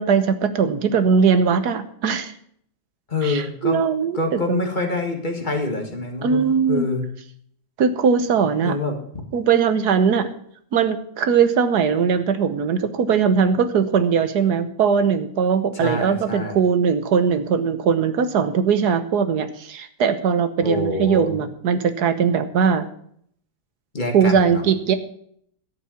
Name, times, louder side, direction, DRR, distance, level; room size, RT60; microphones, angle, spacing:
voice 1, 0.0-2.3 3.2-4.6 6.2-6.9 7.8-8.8 9.3-10.3 10.7-22.9 24.1-24.9, right 6 dB, 60° right, 11 dB, 1.4 m, -20 dB
voice 2, 3.1-3.8 4.1-6.4 6.7-7.0 8.6-9.2 15.7-16.6 20.6-21.3 23.9-24.6, left 2 dB, 25° left, 3 dB, 2.0 m, -26 dB
12.0 x 7.2 x 7.1 m, 0.65 s
omnidirectional pair, 2.2 m